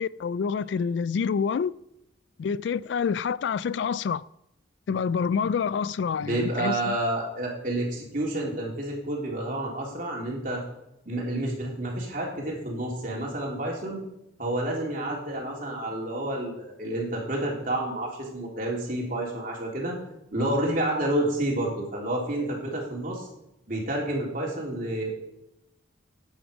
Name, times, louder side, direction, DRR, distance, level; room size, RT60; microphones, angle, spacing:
voice 1, 0.0-1.7 2.4-4.2 4.9-7.0, left 6 dB, 65° left, 0.3 m, -27 dB
voice 2, 6.2-10.6 11.1-14.0 14.4-20.0 20.3-23.3 23.7-25.2, right 1 dB, 45° right, 3.3 m, -29 dB
12.0 x 9.6 x 5.1 m
head